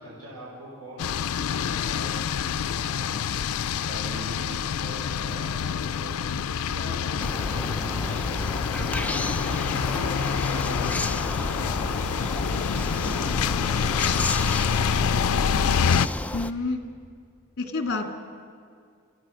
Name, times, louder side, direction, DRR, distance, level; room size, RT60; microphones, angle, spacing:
voice 1, 0.0-9.2 9.6-15.2, right 1 dB, 90° right, -7 dB, 5.5 m, -43 dB
sound 1, 1.0-16.1, left 7 dB, 90° left, 0.5 m, -27 dB
sound 2, 7.2-16.5, left 1 dB, 5° left, 0.5 m, -31 dB
voice 2, 16.3-16.8 17.6-18.1, left 3 dB, 50° left, 4 dB, 2.2 m, -28 dB
30.0 x 14.0 x 6.3 m, 2.2 s
head